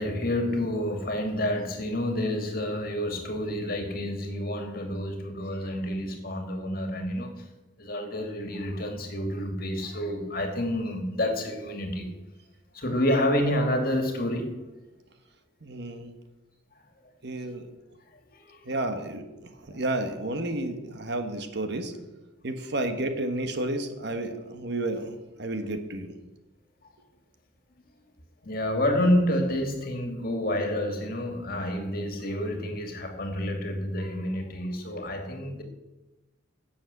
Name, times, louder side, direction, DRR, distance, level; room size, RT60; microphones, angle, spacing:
voice 1, 0.0-7.3 7.8-12.1 12.7-14.6 18.5-18.6 19.7-19.8 28.4-35.6, left 1 dB, 50° left, 2.2 m, -29 dB
voice 2, 15.6-16.1 17.2-17.7 18.6-21.9 22.4-26.1, right 2 dB, 60° right, 1.3 m, -31 dB
11.5 x 7.2 x 8.1 m
head